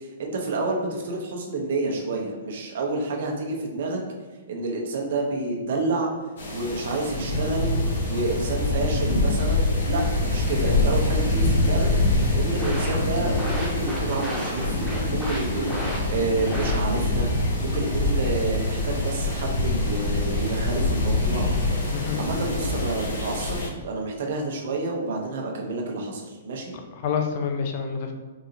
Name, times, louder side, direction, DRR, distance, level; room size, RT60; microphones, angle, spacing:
voice 1, 0.0-4.0 4.5-6.1 6.5-7.7 8.1-11.9 12.3-14.8 15.1-17.3 17.6-21.5 21.9-26.7, right 3 dB, 65° right, 0 dB, 0.8 m, -29 dB
sound 1, 6.4-23.7, left 2 dB, 75° left, 1.0 m, -25 dB
sound 2, 12.3-17.2, equal, ahead, 1.1 m, -32 dB
voice 2, 26.9-28.1, left 6 dB, 45° left, 4 dB, 0.5 m, -28 dB
3.9 x 2.8 x 2.6 m, 1.3 s
hypercardioid pair, 130°, 0 cm